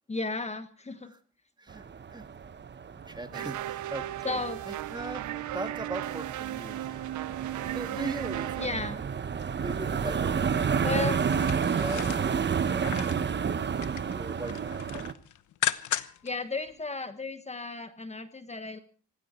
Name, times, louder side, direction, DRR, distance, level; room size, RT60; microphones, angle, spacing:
voice 1, 0.1-1.1 4.2-4.6 8.6-9.0 10.8-11.2 16.2-18.8, left 3 dB, 20° left, 10 dB, 1.3 m, -34 dB
voice 2, 1.6-2.3 2.9-4.4 4.7-7.0 7.5-8.8 9.4-13.6 14.1-14.7, right 2 dB, 15° right, 8 dB, 1.8 m, -40 dB
sound 1, 1.7-15.1, right 6 dB, 35° right, 1.1 m, -31 dB
sound 2, 3.3-8.7, right 15 dB, 75° right, 0.7 m, -36 dB
sound 3, 11.2-13.3 13.6-14.1 14.5-16.3 16.7-16.8, left 12 dB, 75° left, 1.1 m, -35 dB
19.0 x 16.0 x 4.4 m, 0.40 s
cardioid pair, 90°, 30 cm